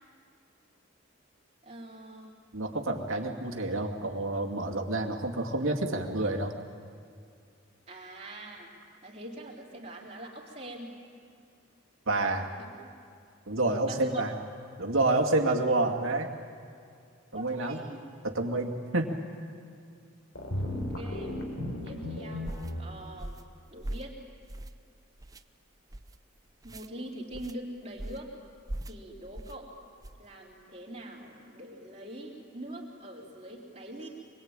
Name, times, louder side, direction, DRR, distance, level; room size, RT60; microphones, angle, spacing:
voice 1, 1.6-2.3 7.9-8.7 9.0-11.0 12.6-12.9 13.8-14.2 17.3-18.0 20.7-21.4 21.8-23.4 23.7-24.2 26.6-28.3 28.9-29.7 30.2-34.1, right 1 dB, 30° right, -3 dB, 3.8 m, -43 dB
voice 2, 2.5-6.5 12.1-12.5 13.5-14.3 14.8-16.3 17.3-17.8 18.2-19.2, right 2 dB, 80° right, 3 dB, 2.3 m, -28 dB
sound 1, 20.3-22.8, left 1 dB, 70° left, 4.3 m, -35 dB
sound 2, 22.4-22.7 23.2-23.5 23.8-24.1 24.5-24.9 25.2-25.4 25.9-26.2 26.6-26.9 27.3-27.6 28.0-28.3 28.7-29.0 29.3-29.6 30.0-30.3, right 1 dB, 15° right, 0.5 m, -40 dB
25.5 x 22.0 x 8.9 m, 2.3 s
head